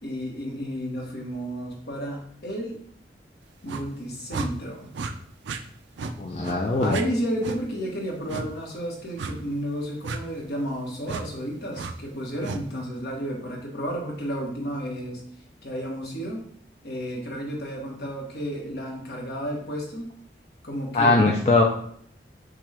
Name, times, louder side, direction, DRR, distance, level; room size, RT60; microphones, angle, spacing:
voice 1, 0.0-2.8 3.6-4.9 6.6-15.2 15.6-16.4 16.8-20.1 20.6-21.2, equal, 65° left, -1 dB, 1.3 m, -32 dB
sound 1, 3.7-3.9 4.3-4.5 4.9-5.1 5.4-5.6 6.0-6.1 6.4-6.6 6.9-7.0 7.4-7.6 8.3-8.5 9.2-9.4 10.0-10.2 11.0-11.2 11.7-11.9 12.4-12.6, right 4 dB, 80° right, 0.4 m, -32 dB
voice 2, 6.2-7.0 20.9-21.6, left 2 dB, 35° left, -1 dB, 0.4 m, -20 dB
5.9 x 2.4 x 3.3 m, 0.63 s
head